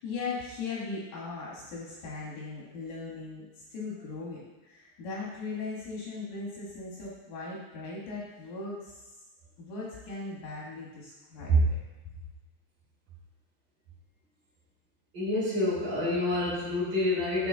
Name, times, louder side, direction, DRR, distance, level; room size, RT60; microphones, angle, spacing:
voice 1, 0.0-3.4 3.7-9.1 9.6-11.8, left 3 dB, 75° left, -4 dB, 1.9 m, -38 dB
voice 2, 15.1-17.5, equal, 60° right, -11 dB, 2.8 m, -27 dB
9.6 x 3.9 x 2.5 m, 1.1 s
omnidirectional pair, 5.0 m